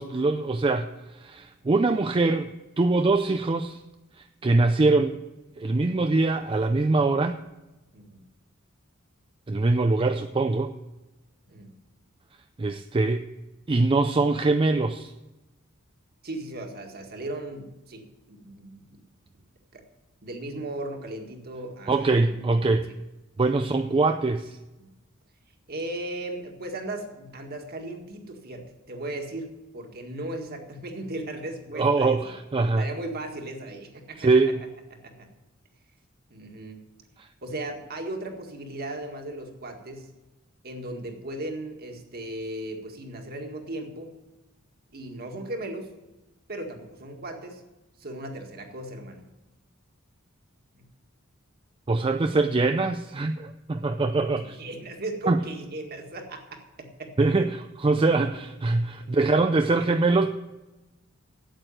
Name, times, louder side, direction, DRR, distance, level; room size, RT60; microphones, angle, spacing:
voice 1, 0.0-2.5 2.8-3.8 4.4-5.2 5.6-7.4 9.5-10.7 12.6-13.3 13.7-15.1 21.9-22.9 23.4-24.6 31.8-32.9 34.2-34.6 51.9-54.6 55.3-55.4 57.2-60.3, right 3 dB, 25° right, 7 dB, 0.4 m, -23 dB
voice 2, 7.9-8.3 11.5-11.7 16.2-19.0 19.7-19.8 20.2-22.5 22.9-23.0 24.8-24.9 25.7-32.3 32.8-34.3 34.9-35.3 36.3-36.8 37.4-40.1 40.6-44.1 44.9-45.9 46.5-47.6 48.0-49.2 50.7-50.8 54.2-57.1, right 1 dB, 45° right, 4 dB, 1.8 m, -37 dB
9.1 x 8.3 x 8.9 m, 1.0 s
head